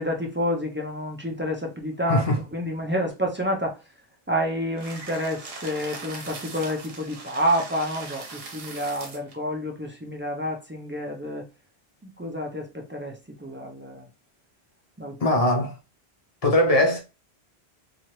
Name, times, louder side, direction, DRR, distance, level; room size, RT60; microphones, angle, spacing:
voice 1, 0.0-2.2 2.5-3.8 4.3-11.5 12.0-14.1 15.0-15.2, equal, 20° right, 0.3 m, -29 dB
voice 2, 2.1-2.4 15.2-15.8 16.4-17.0, left 1 dB, 40° left, 0.7 m, -20 dB
sound 1, 4.8-9.3, right 3 dB, 70° right, 1.0 m, -40 dB
2.8 x 2.4 x 3.0 m
omnidirectional pair, 1.1 m